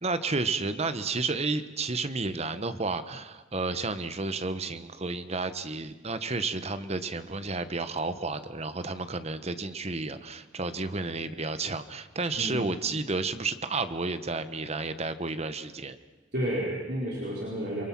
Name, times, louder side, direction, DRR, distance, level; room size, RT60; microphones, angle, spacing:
voice 1, 0.0-16.0, right 3 dB, 35° right, 11 dB, 1.1 m, -31 dB
voice 2, 12.4-12.7 16.3-17.8, equal, 55° right, -4 dB, 4.7 m, -31 dB
29.0 x 22.5 x 6.1 m, 1.2 s
head